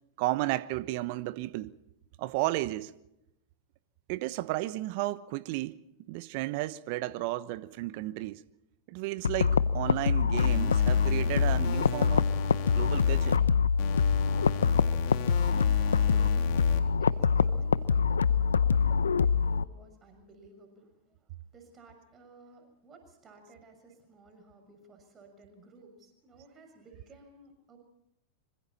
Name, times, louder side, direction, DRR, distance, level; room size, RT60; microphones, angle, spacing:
voice 1, 0.2-1.7 2.2-2.9 4.1-5.8 6.1-8.4 8.9-12.3 12.7-13.4, right 17 dB, 55° right, 1.0 m, -33 dB
sound 1, 9.2-19.6, left 6 dB, 85° left, 0.8 m, -25 dB
sound 2, 10.4-13.4 13.8-16.8, left 9 dB, 55° left, 3.4 m, -38 dB
voice 2, 15.0-27.8, right 2 dB, 25° right, 6.4 m, -54 dB
27.0 x 25.0 x 4.3 m
hypercardioid pair, 100°, 0 cm